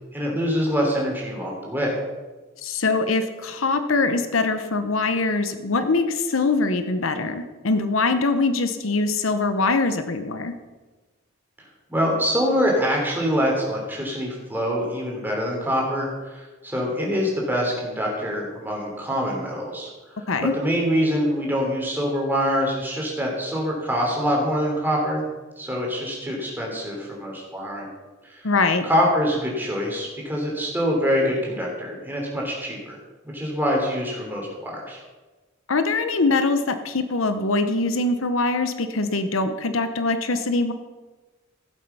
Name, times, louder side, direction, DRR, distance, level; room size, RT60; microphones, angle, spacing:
voice 1, 0.1-2.0 11.9-20.2 20.5-25.2 25.6-27.9 28.2-28.4 28.8-33.0 33.3-35.0, equal, 10° right, -2 dB, 3.2 m, -25 dB
voice 2, 2.6-10.5 20.3-20.5 28.4-28.9 35.7-40.7, left 3 dB, 75° left, 9 dB, 0.9 m, -23 dB
15.5 x 7.8 x 5.6 m, 1.2 s
head